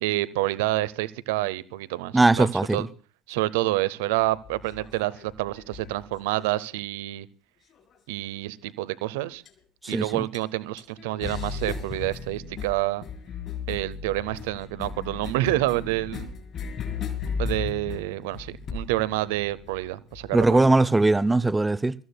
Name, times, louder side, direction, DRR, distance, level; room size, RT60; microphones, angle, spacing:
voice 1, 0.0-2.9 3.3-7.3 8.1-9.4 9.9-13.0 13.7-16.3 17.4-20.7, right 17 dB, 65° right, 0.7 m, -28 dB
voice 2, 2.1-2.9 9.9-10.2 20.3-21.9, right 2 dB, 10° right, 0.6 m, -20 dB
sound 1, 4.2-6.8 7.7-8.3 9.4-9.6 9.9-10.0 10.3-10.4 10.8-20.5, left 5 dB, 40° left, 4.1 m, -36 dB
28.0 x 14.0 x 2.2 m
figure-of-eight pair, 65°, 0 cm